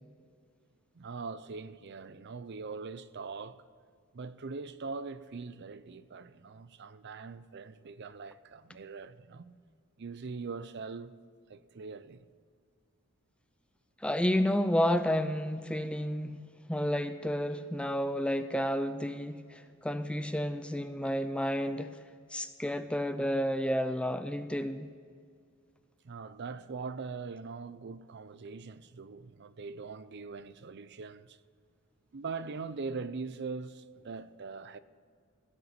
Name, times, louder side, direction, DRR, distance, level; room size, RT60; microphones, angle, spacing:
voice 1, 0.9-3.6 4.1-9.5 10.0-11.1 11.5-12.3 26.0-31.4 32.1-34.8, right 4 dB, 50° right, 0.5 m, -42 dB
voice 2, 14.0-16.4 16.7-22.0 22.3-24.9, equal, 5° left, 0.4 m, -31 dB
16.0 x 6.9 x 8.3 m
head